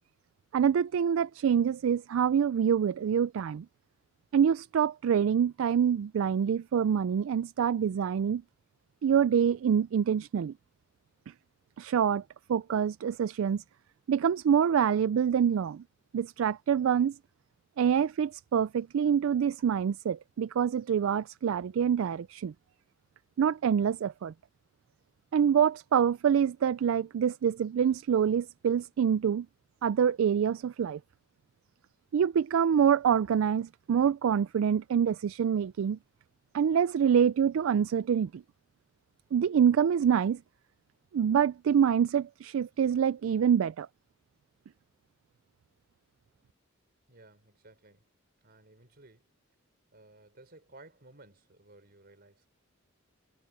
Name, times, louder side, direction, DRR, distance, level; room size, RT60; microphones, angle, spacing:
voice 1, 0.5-3.7 4.3-8.4 9.0-10.5 11.8-12.2 12.5-13.6 14.1-15.8 16.1-17.2 17.8-22.5 23.4-24.3 25.3-29.5 29.8-31.0 32.1-36.0 36.5-38.4 39.3-40.4 41.1-43.9, right 8 dB, 70° right, 0.3 m, -26 dB
voice 2, 47.1-48.1 48.4-49.3 49.9-52.5, right 2 dB, 50° right, 4.3 m, -56 dB
head